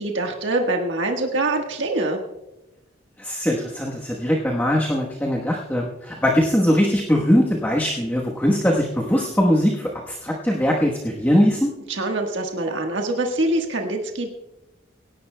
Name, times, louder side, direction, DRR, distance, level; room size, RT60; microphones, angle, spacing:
voice 1, 0.0-2.2 11.9-14.3, right 2 dB, 85° right, 2 dB, 1.4 m, -24 dB
voice 2, 3.2-11.7, equal, 10° left, -2 dB, 1.1 m, -21 dB
24.0 x 11.0 x 2.2 m, 0.96 s
head